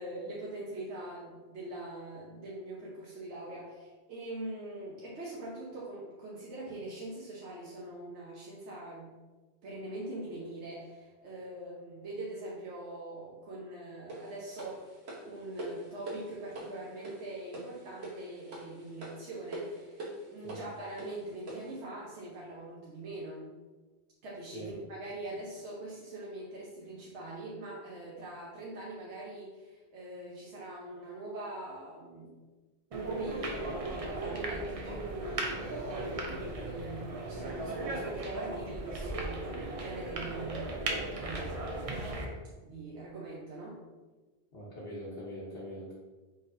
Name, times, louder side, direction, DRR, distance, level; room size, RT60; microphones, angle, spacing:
voice 1, 0.0-9.1 9.6-14.9 15.2-20.0 20.3-23.5 24.2-32.3 32.9-39.5 39.8-42.2 42.6-43.8, right 2 dB, 90° right, -5 dB, 1.2 m, -43 dB
sound 1, 14.1-21.8, right 1 dB, 70° right, 1.4 m, -44 dB
sound 2, 32.9-42.3, right 2 dB, 40° right, 0.6 m, -37 dB
voice 2, 44.5-46.0, equal, 60° left, -7 dB, 1.3 m, -42 dB
5.0 x 3.9 x 2.7 m, 1.2 s
omnidirectional pair, 1.1 m